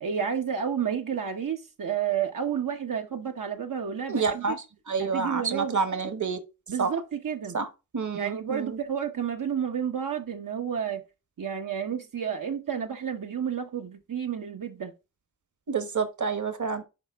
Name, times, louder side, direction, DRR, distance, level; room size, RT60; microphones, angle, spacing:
voice 1, 0.0-4.6 5.0-5.7 6.7-7.6 8.1-11.0 11.4-14.9, right 8 dB, 90° right, 1.1 m, -31 dB
voice 2, 4.1-4.5 4.9-6.4 6.8-6.9 7.5-7.7 7.9-8.8 15.7-16.8, right 5 dB, 65° right, 1.3 m, -28 dB
11.0 x 5.0 x 3.5 m
wide cardioid pair, 90°, 32 cm